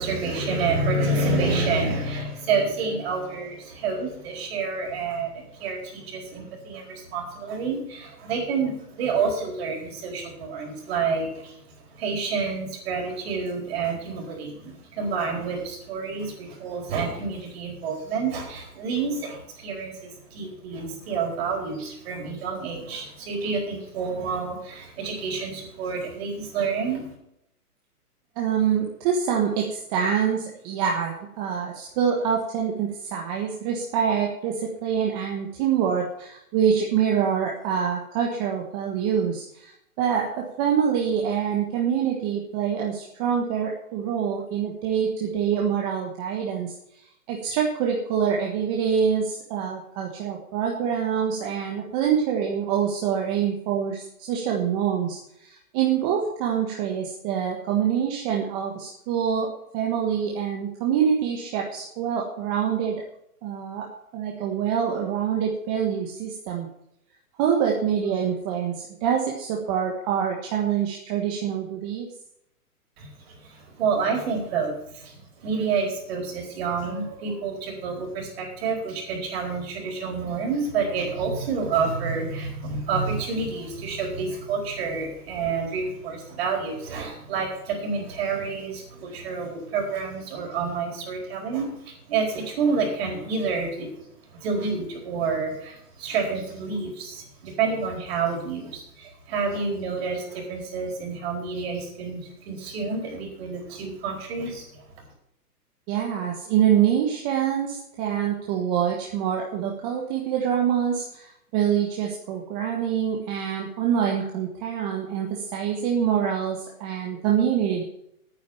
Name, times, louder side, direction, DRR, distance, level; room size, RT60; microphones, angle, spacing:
voice 1, 0.0-11.6 11.9-27.1 73.0-93.9 94.3-104.7, right 4 dB, 40° right, 1 dB, 4.3 m, -28 dB
voice 2, 28.4-39.7 40.0-46.7 47.3-59.5 59.7-63.0 63.4-63.9 64.1-66.7 67.4-72.1 105.9-117.8, right 8 dB, 25° right, 0 dB, 1.3 m, -25 dB
9.5 x 8.4 x 7.1 m, 0.76 s
hypercardioid pair, 150°, 47 cm